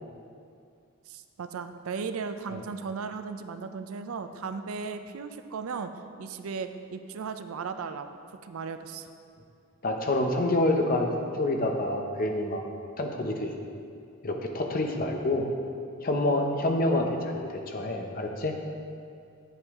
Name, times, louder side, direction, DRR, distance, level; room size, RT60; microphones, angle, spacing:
voice 1, 1.1-5.9 6.2-9.1, right 5 dB, 80° right, 9 dB, 0.5 m, -36 dB
voice 2, 9.8-11.1 11.4-12.6 13.0-13.5 14.2-15.4 16.0-18.5, left 1 dB, 40° left, 3 dB, 0.8 m, -27 dB
8.9 x 7.9 x 3.6 m, 2.4 s
head